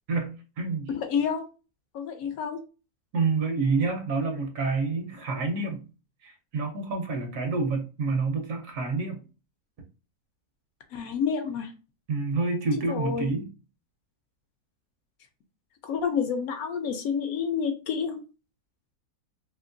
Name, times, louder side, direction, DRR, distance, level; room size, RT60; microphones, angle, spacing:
voice 1, 0.1-0.9 3.1-5.8 6.2-9.2 12.1-13.5, right 4 dB, 70° right, 1.0 m, -28 dB
voice 2, 0.9-1.5 1.9-2.6 10.9-11.7 12.9-13.3 15.8-18.2, left 6 dB, 70° left, 0.9 m, -29 dB
2.8 x 2.8 x 2.5 m
omnidirectional pair, 1.6 m